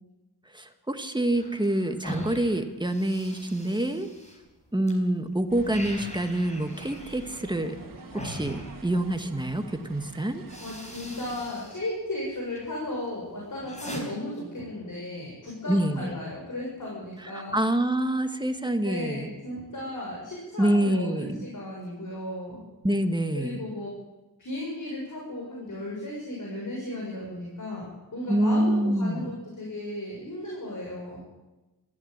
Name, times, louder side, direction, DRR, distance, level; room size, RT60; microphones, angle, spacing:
voice 1, 0.5-4.1 4.7-7.8 8.1-10.4 15.7-16.1 17.3-19.3 20.6-21.4 22.8-23.6 28.3-29.3, right 1 dB, 10° right, 7 dB, 1.6 m, -26 dB
sound 1, 1.3-4.9 5.3-9.3 10.0-10.1 10.4-11.8 12.1-12.7 13.1-14.0, equal, 20° left, 4.6 m, -42 dB
sound 2, 5.5-11.5, right 4 dB, 60° right, 2.4 m, -46 dB
voice 2, 10.6-17.6 18.8-22.6 23.3-23.9 24.4-31.2, left 1 dB, 55° left, -3 dB, 6.6 m, -35 dB
22.5 x 15.0 x 8.8 m, 1.1 s
wide cardioid pair, 135°, 38 cm